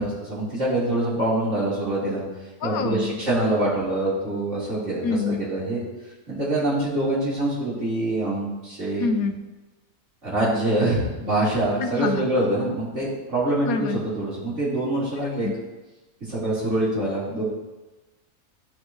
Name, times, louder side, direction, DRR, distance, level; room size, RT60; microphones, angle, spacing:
voice 1, 0.0-2.2 2.6-5.8 6.3-9.1 10.2-15.5 16.3-17.4, right 1 dB, 55° right, -9 dB, 4.2 m, -25 dB
voice 2, 2.6-3.2 5.0-5.4 9.0-9.4 11.8-12.3 13.6-14.0 15.4-15.5, left 4 dB, 75° left, 7 dB, 1.2 m, -26 dB
14.5 x 6.3 x 3.1 m, 1.1 s
omnidirectional pair, 1.5 m